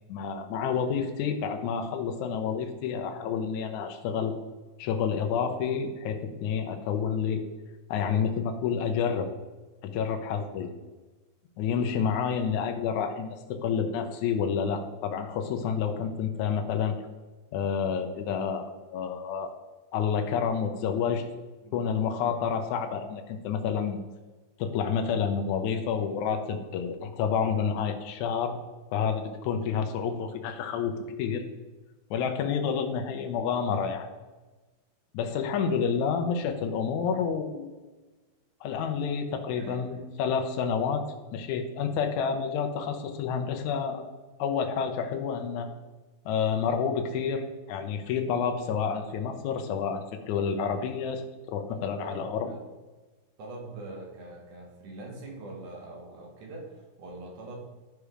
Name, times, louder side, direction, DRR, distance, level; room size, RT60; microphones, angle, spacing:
voice 1, 0.1-4.3 4.8-7.4 7.9-9.3 9.8-10.7 11.6-16.9 17.5-19.5 19.9-21.3 21.7-24.0 24.6-28.6 28.9-31.4 32.1-34.1 35.1-37.7 38.6-41.0 41.3-44.0 44.4-45.7 46.3-52.5, left 6 dB, 75° left, 5 dB, 2.2 m, -29 dB
voice 2, 39.6-40.0 51.7-52.6 53.4-57.6, right 2 dB, 80° right, -1 dB, 3.4 m, -43 dB
12.0 x 4.9 x 5.0 m, 1.2 s
omnidirectional pair, 3.5 m